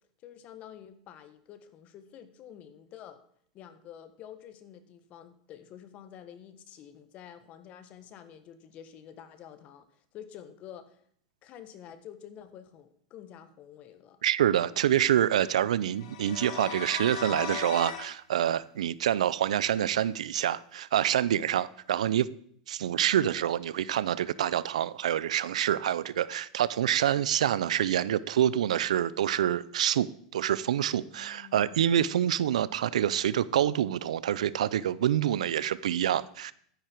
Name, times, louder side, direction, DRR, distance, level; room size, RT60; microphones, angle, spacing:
voice 1, 0.2-3.2 3.5-11.0 11.4-14.2 31.1-31.8, left 9 dB, 40° left, 1.5 m, -49 dB
voice 2, 14.2-22.3 22.7-30.1 30.3-36.5, right 10 dB, 90° right, 0.5 m, -26 dB
sound 1, 16.0-18.1, left 7 dB, 70° left, 1.8 m, -38 dB
12.0 x 9.9 x 4.6 m
supercardioid pair, 125°, 4 cm